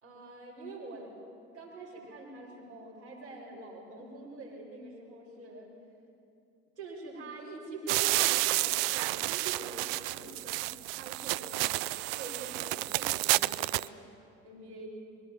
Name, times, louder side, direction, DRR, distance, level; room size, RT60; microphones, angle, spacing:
voice 1, 0.0-1.2 1.5-5.7 6.8-14.0 14.4-14.9, right 3 dB, 90° right, -5 dB, 5.4 m, -45 dB
sound 1, 7.9-13.9, right 20 dB, 65° right, 0.5 m, -30 dB
25.5 x 21.0 x 7.3 m, 2.6 s
figure-of-eight pair, 60°, 32 cm